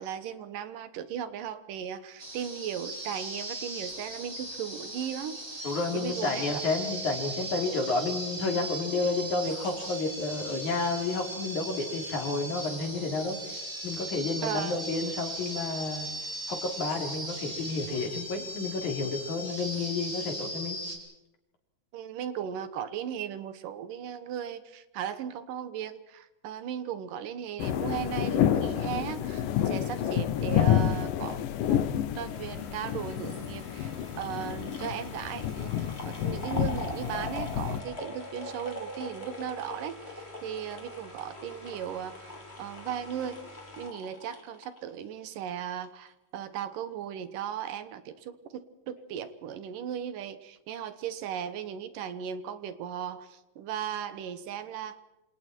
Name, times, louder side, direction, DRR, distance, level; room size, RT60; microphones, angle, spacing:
voice 1, 0.0-5.4 5.9-6.6 14.4-14.8 21.9-31.4 31.7-31.8 32.2-42.3 42.6-43.4 43.8-55.0, right 9 dB, 80° right, 13 dB, 2.8 m, -37 dB
sound 1, 2.2-21.0, right 1 dB, 25° right, 5.8 m, -38 dB
voice 2, 5.6-13.6 13.8-16.1 16.5-20.8, left 3 dB, 60° left, 3 dB, 5.1 m, -31 dB
sound 2, 27.6-37.8, left 10 dB, 80° left, 2.8 m, -29 dB
sound 3, 32.2-45.5 45.8-45.9, left 1 dB, 20° left, 3.5 m, -43 dB
28.0 x 27.0 x 4.6 m, 0.95 s
omnidirectional pair, 3.8 m